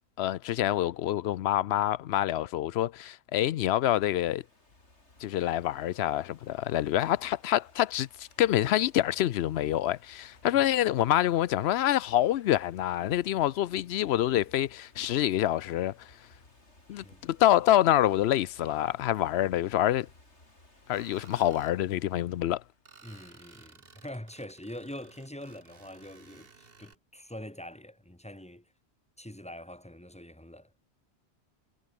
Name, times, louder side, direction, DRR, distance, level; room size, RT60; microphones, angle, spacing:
voice 1, 0.2-4.4 5.2-16.1 16.9-20.1 20.9-22.6, left 12 dB, 75° left, 0.8 m, -26 dB
Ocean / Fireworks, 3.7-22.9, left 2 dB, 90° left, 6.4 m, -58 dB
voice 2, 16.9-17.2 23.0-28.6 29.2-30.7, left 1 dB, 5° left, 1.7 m, -44 dB
Screech, 20.9-21.8 22.9-26.9, right 5 dB, 55° right, 1.8 m, -56 dB
omnidirectional pair, 1.1 m